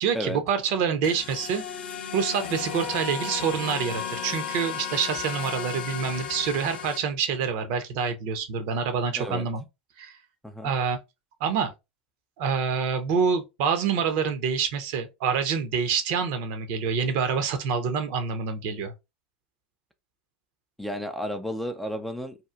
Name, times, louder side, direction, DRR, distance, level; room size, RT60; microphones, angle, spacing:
voice 1, 0.0-1.6 2.1-9.6 10.0-10.2 10.6-11.0 11.4-11.7 12.4-18.9, right 6 dB, 55° right, 0.7 m, -26 dB
sound 1, 1.0-7.0, left 7 dB, 70° left, 0.6 m, -34 dB
voice 2, 9.2-9.5 10.4-10.7 20.8-22.4, equal, ahead, 0.4 m, -32 dB
2.8 x 2.4 x 2.3 m
hypercardioid pair, 90°, 6 cm